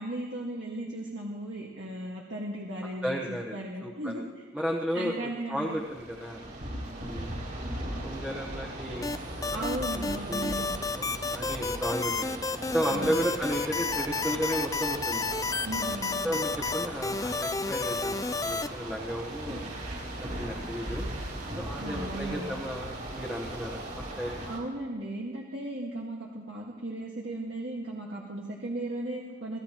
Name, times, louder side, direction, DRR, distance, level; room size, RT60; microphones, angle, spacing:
voice 1, 0.0-4.2 4.9-5.8 9.5-10.8 12.9-13.3 15.6-16.4 21.8-22.6 24.5-29.6, right 1 dB, 70° right, -3 dB, 1.7 m, -36 dB
voice 2, 3.0-4.1 4.5-5.1 5.5-6.4 7.0-7.3 7.7-9.7 10.3-10.6 10.9-12.3 12.7-15.3 16.2-19.6 20.2-21.1 21.6-24.4, equal, 5° right, -3 dB, 1.1 m, -33 dB
sound 1, 5.7-24.6, right 1 dB, 50° right, 4.1 m, -38 dB
sound 2, 9.0-18.7, left 4 dB, 20° left, 0.3 m, -31 dB
23.0 x 16.5 x 3.0 m, 1.5 s
head